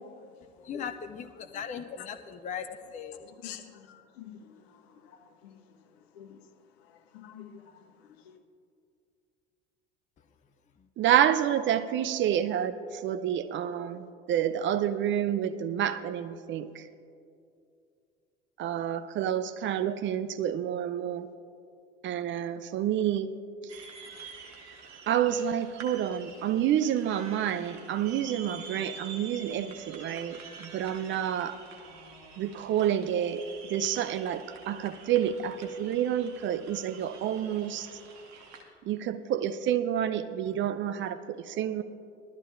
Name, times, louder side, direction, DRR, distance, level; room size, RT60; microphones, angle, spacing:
voice 1, 0.0-0.9 3.2-6.4 6.8-8.3, left 8 dB, 60° left, 5 dB, 1.2 m, -49 dB
voice 2, 0.6-3.3, left 7 dB, 20° left, 9 dB, 0.5 m, -38 dB
voice 3, 11.0-16.9 18.6-21.3 22.0-23.3 25.1-31.6 32.4-33.4 33.7-37.9 38.8-41.8, right 10 dB, 35° right, 11 dB, 0.5 m, -29 dB
sound 1, 23.7-38.6, right 5 dB, 50° right, 1.8 m, -47 dB
20.0 x 13.0 x 2.5 m, 2.5 s
figure-of-eight pair, 70°, 34 cm